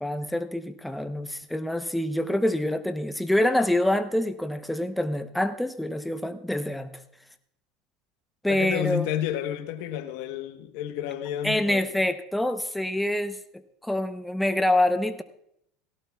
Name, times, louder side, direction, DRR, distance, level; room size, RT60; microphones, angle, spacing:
voice 1, 0.0-7.0 8.4-9.1 11.4-13.4 13.8-15.2, left 1 dB, 5° left, 0.8 m, -26 dB
voice 2, 8.5-11.9, left 10 dB, 75° left, 1.1 m, -31 dB
18.0 x 16.5 x 2.4 m
supercardioid pair, 110°, 0 cm